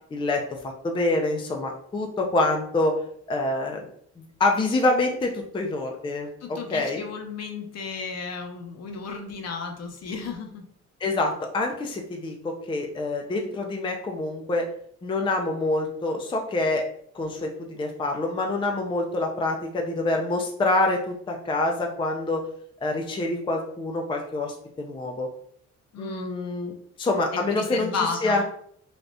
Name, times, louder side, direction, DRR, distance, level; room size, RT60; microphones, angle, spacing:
voice 1, 0.1-2.9 3.3-3.8 4.2-7.0 11.0-14.7 15.0-16.8 17.1-22.4 22.8-25.3 26.0-26.7 27.0-28.4, left 2 dB, 15° left, 2 dB, 0.4 m, -26 dB
voice 2, 6.4-10.6 25.9-26.3 27.5-28.4, left 5 dB, 55° left, 3 dB, 0.7 m, -33 dB
3.4 x 2.3 x 2.6 m, 0.63 s
cardioid pair, 90°, 30 cm